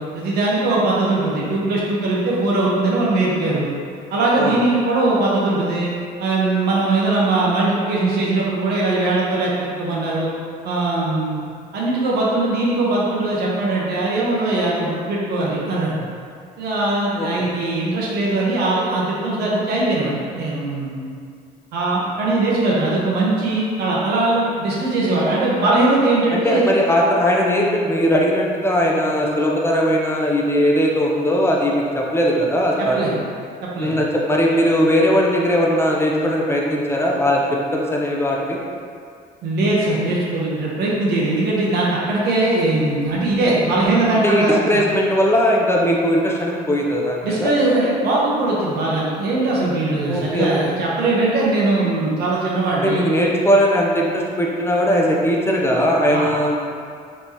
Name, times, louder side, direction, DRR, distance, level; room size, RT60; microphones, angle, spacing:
voice 1, 0.0-3.7 4.1-5.9 6.2-10.3 10.6-11.4 11.7-16.0 16.6-21.0 21.7-26.7 32.9-33.1 33.6-33.9 39.4-44.8 47.2-53.1 56.1-56.2, right 2 dB, 75° right, -5 dB, 1.1 m, -20 dB
voice 2, 17.2-17.5 26.3-33.1 33.8-38.6 44.2-47.5 50.1-50.8 52.8-56.6, equal, 15° left, -2 dB, 0.5 m, -19 dB
4.3 x 3.2 x 2.9 m, 2.3 s
cardioid pair, 110°, 17 cm